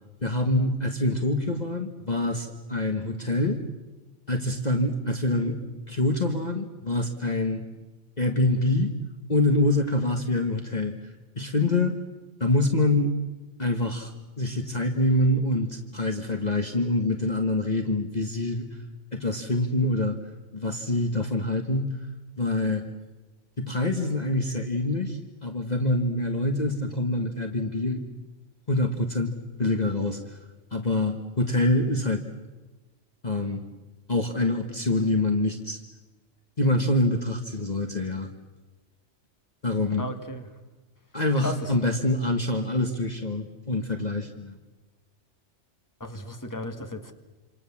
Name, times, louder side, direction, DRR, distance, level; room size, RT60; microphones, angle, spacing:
voice 1, 0.2-3.6 4.3-5.5 5.9-7.6 8.2-8.9 9.3-11.0 11.3-12.0 12.4-13.1 13.6-14.1 14.4-18.7 19.1-20.2 20.5-22.0 22.4-22.8 23.6-28.0 28.7-29.3 29.6-30.4 30.7-32.2 33.2-33.6 34.1-35.8 36.6-38.3 39.6-40.1 41.1-44.6, left 2 dB, 35° left, 4 dB, 1.7 m, -25 dB
voice 2, 40.0-40.5 41.4-41.7 46.0-47.1, left 1 dB, 15° left, 5 dB, 2.0 m, -35 dB
27.5 x 27.0 x 7.3 m, 1.2 s
omnidirectional pair, 1.2 m